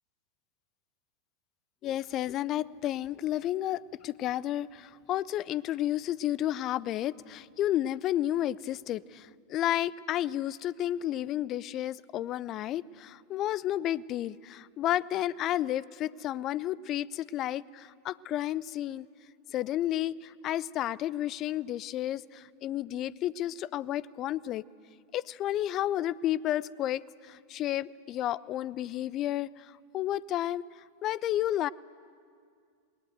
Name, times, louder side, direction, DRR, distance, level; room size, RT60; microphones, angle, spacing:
voice 1, 1.8-19.1 19.5-24.6 25.1-31.7, left 13 dB, 35° left, 22 dB, 0.5 m, -32 dB
27.5 x 21.5 x 8.1 m, 2.2 s
figure-of-eight pair, 90°, 0 cm